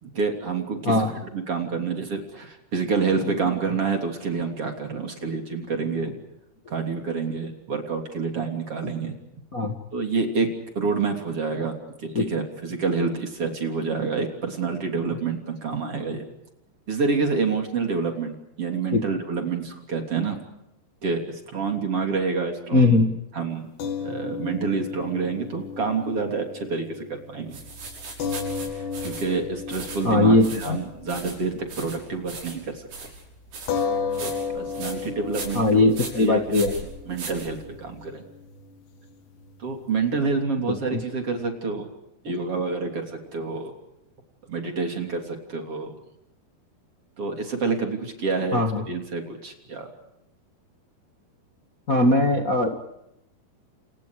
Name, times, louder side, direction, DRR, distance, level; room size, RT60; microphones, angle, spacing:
voice 1, 0.0-6.2 6.7-9.2 9.9-10.5 10.8-16.2 16.9-20.4 21.0-23.0 23.3-23.7 24.0-27.6 28.8-32.9 34.1-35.9 36.2-36.6 37.1-38.3 39.6-41.9 42.2-43.7 44.5-46.0 47.2-49.9, right 4 dB, 35° right, 3 dB, 3.7 m, -28 dB
voice 2, 22.7-23.1 30.0-30.8 35.5-36.7 40.7-41.0 48.5-48.8 51.9-52.7, left 2 dB, 55° left, 3 dB, 0.9 m, -20 dB
sound 1, 23.8-32.3 32.6-32.8 33.7-40.2, left 5 dB, 75° left, 4.5 m, -34 dB
sound 2, 27.5-38.0, right 3 dB, 85° right, 8.7 m, -39 dB
30.0 x 29.0 x 5.0 m, 0.84 s
omnidirectional pair, 4.8 m